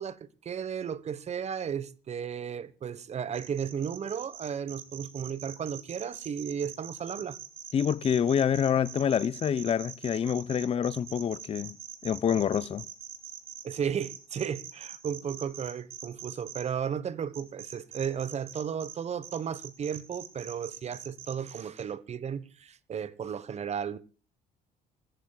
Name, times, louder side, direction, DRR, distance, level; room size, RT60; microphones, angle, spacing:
voice 1, 0.0-7.4 13.6-24.0, right 7 dB, 40° right, 1.2 m, -34 dB
sound 1, 3.3-16.6 17.3-19.0 19.2-21.8, right 10 dB, 60° right, 4.1 m, -43 dB
voice 2, 7.7-11.8 12.0-12.9, left 8 dB, 35° left, 0.6 m, -27 dB
27.0 x 15.0 x 2.3 m
cardioid pair, 110°, 17 cm